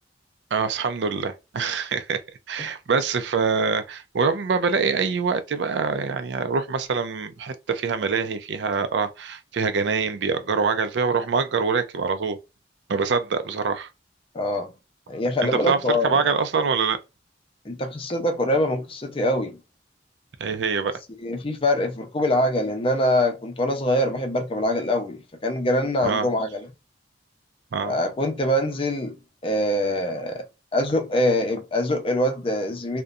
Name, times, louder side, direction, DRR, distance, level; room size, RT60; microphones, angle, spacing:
voice 1, 0.5-2.2 2.5-12.4 12.9-13.9 15.4-17.0 20.4-20.9 26.0-26.3 27.7-28.0, right 5 dB, 75° right, 0.4 m, -24 dB
voice 2, 14.3-14.7 15.1-16.2 17.7-19.6 21.2-26.7 27.9-29.2 29.4-30.4 30.7-33.0, left 1 dB, 30° left, 0.5 m, -24 dB
2.4 x 2.1 x 2.6 m
head